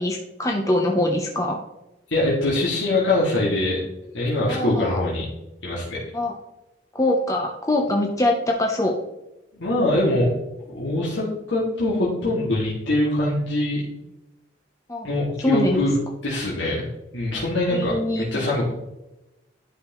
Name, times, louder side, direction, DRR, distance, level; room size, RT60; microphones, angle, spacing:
voice 1, 0.0-1.6 4.5-5.0 6.1-6.4 6.9-9.0 14.9-15.1 15.4-15.9 17.7-18.5, left 1 dB, 15° left, 1 dB, 0.6 m, -23 dB
voice 2, 2.1-3.8 4.1-5.3 5.6-6.0 9.5-10.3 10.7-13.9 15.0-15.9 16.2-16.9 17.1-18.7, left 1 dB, 75° left, -6 dB, 2.0 m, -23 dB
11.0 x 5.6 x 3.0 m, 0.95 s
head